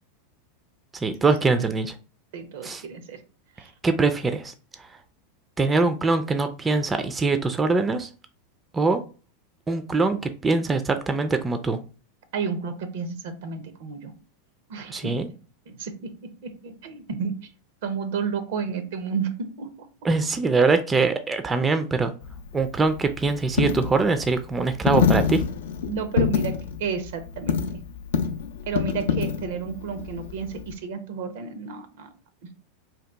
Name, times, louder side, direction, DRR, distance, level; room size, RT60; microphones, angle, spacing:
voice 1, 0.9-1.9 2.6-2.8 3.8-4.9 5.6-8.1 8.7-9.0 9.7-11.8 14.9-15.3 20.0-22.1 22.5-25.4, right 3 dB, 20° right, 8 dB, 0.3 m, -23 dB
voice 2, 2.3-3.2 3.6-3.7 12.3-14.1 14.7-15.4 15.7-17.5 17.8-19.9 20.2-20.3 25.9-27.6 28.7-32.1 32.4-32.5, right 6 dB, 70° right, 10 dB, 0.6 m, -32 dB
Coin (dropping), 22.2-30.8, left 7 dB, 75° left, 0.3 m, -27 dB
2.8 x 2.2 x 3.3 m, 0.36 s
hypercardioid pair, 100°, 0 cm